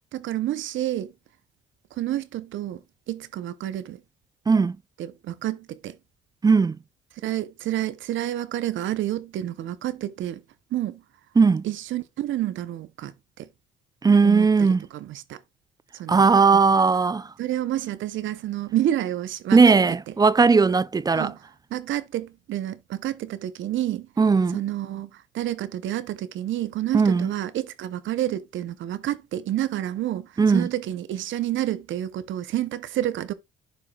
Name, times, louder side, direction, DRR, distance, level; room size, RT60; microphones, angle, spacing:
voice 1, 0.1-1.1 2.0-2.8 3.1-4.0 5.0-6.0 7.2-10.4 10.7-11.0 11.6-13.1 13.4-13.5 14.2-14.5 14.9-15.4 16.0-16.2 16.5-16.6 17.4-19.8 21.1-21.4 21.7-24.1 24.5-33.3, right 13 dB, 75° right, 0.7 m, -29 dB
voice 2, 4.5-4.8 6.4-6.8 11.4-11.6 14.0-14.8 16.1-17.3 19.5-21.3 24.2-24.6 26.9-27.3 30.4-30.7, right 4 dB, 20° right, 0.3 m, -18 dB
11.5 x 4.8 x 2.3 m
cardioid pair, 90°, 20 cm